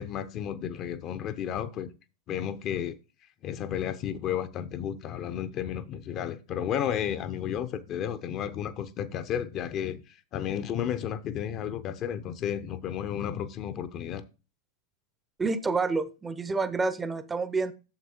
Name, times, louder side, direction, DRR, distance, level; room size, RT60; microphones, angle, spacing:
voice 1, 0.0-1.9 2.3-3.0 3.4-14.2, left 9 dB, 35° left, 0.7 m, -32 dB
voice 2, 15.4-17.7, right 4 dB, 15° right, 0.7 m, -28 dB
9.6 x 7.3 x 2.9 m
figure-of-eight pair, 90°, 0 cm